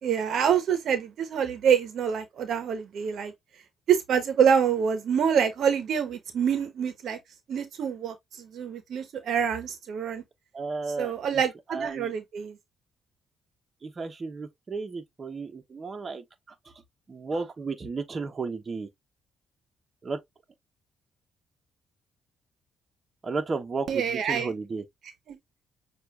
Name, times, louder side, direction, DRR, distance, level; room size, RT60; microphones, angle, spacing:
voice 1, 0.0-3.3 3.9-7.2 7.5-10.2 11.0-12.6 23.9-24.5 25.3-25.4, right 7 dB, 65° right, 1.0 m, -26 dB
voice 2, 10.5-11.4 11.7-12.1 13.8-16.7 17.1-18.9 20.0-20.2 23.2-24.8, right 4 dB, 35° right, 1.2 m, -34 dB
6.7 x 2.6 x 2.5 m
cardioid pair, 90°, 0 cm